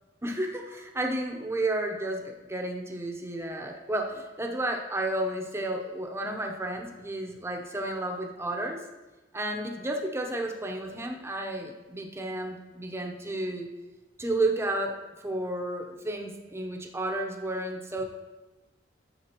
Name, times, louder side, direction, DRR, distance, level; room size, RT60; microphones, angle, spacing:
voice 1, 0.2-8.8 9.3-13.7 14.2-15.0 15.2-18.0, right 1 dB, 15° right, 2 dB, 0.8 m, -32 dB
11.0 x 7.1 x 3.0 m, 1.1 s
head